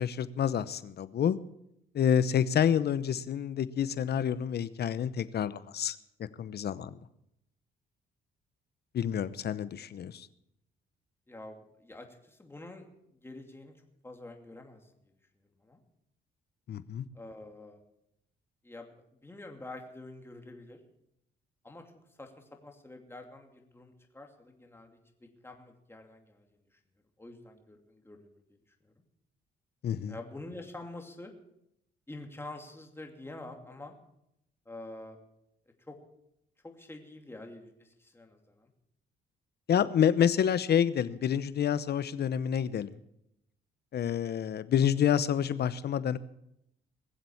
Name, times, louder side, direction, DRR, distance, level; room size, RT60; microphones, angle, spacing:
voice 1, 0.0-1.4 1.9-6.0 6.4-6.9 8.9-10.3 16.7-17.1 29.8-30.1 39.7-42.9 43.9-46.2, left 8 dB, 55° left, 16 dB, 0.8 m, -28 dB
voice 2, 11.3-12.8 13.2-13.7 14.0-15.1 15.6-15.8 17.1-17.8 18.6-20.8 21.6-21.8 22.2-25.0 25.4-26.5 26.7-26.8 27.2-28.4 28.8-28.9 30.0-31.3 32.1-33.9 34.7-35.2 35.9-36.0 36.6-38.7, left 2 dB, 10° left, 3 dB, 2.6 m, -47 dB
20.5 x 7.6 x 7.1 m, 0.79 s
cardioid pair, 90°, 20 cm